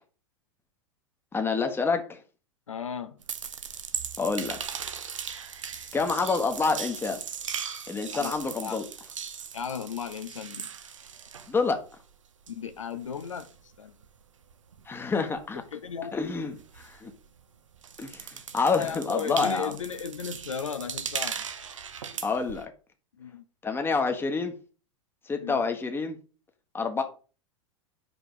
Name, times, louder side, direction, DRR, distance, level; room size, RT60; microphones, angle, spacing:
voice 1, 1.3-2.2 4.2-4.6 5.9-7.2 7.9-8.8 11.5-11.8 14.9-15.6 16.1-17.1 18.0-19.7 22.2-22.7 23.6-24.5 25.3-26.2 26.7-27.0, left 4 dB, 15° left, 1.3 m, -28 dB
voice 2, 2.7-3.2 8.1-8.8 9.5-10.7 12.5-13.5 13.8-14.0 15.7-16.2 18.7-21.4 23.2-23.4 25.4-25.7, left 6 dB, 75° left, 0.8 m, -35 dB
sound 1, 3.2-12.1 12.4-17.4 17.7-22.6, right 7 dB, 75° right, 0.8 m, -38 dB
5.3 x 5.0 x 6.1 m
figure-of-eight pair, 90°, 16 cm